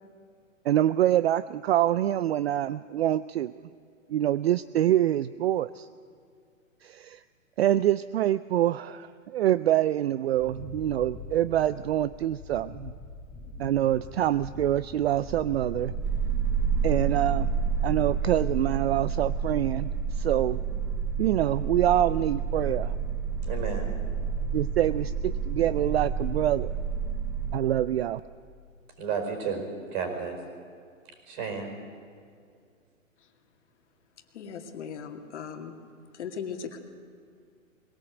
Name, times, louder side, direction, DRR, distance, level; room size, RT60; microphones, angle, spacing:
voice 1, 0.6-3.5 4.1-5.9 6.8-7.2 7.6-12.9 13.6-15.9 16.8-17.5 17.8-20.6 21.2-23.0 24.5-26.7 27.5-28.2, right 12 dB, 50° right, 16 dB, 0.5 m, -25 dB
Wind, 10.3-17.2 17.5-18.0, left 4 dB, 15° left, 4.6 m, -43 dB
sound 1, 15.3-27.6, right 6 dB, 5° right, 0.8 m, -29 dB
voice 2, 23.4-23.9 29.0-29.6 29.9-30.4 31.3-31.7, right 6 dB, 35° right, 5 dB, 4.9 m, -32 dB
voice 3, 34.3-35.7 36.1-36.8, left 7 dB, 60° left, 5 dB, 2.3 m, -38 dB
21.0 x 17.0 x 8.0 m, 2.2 s
hypercardioid pair, 150°, 40 cm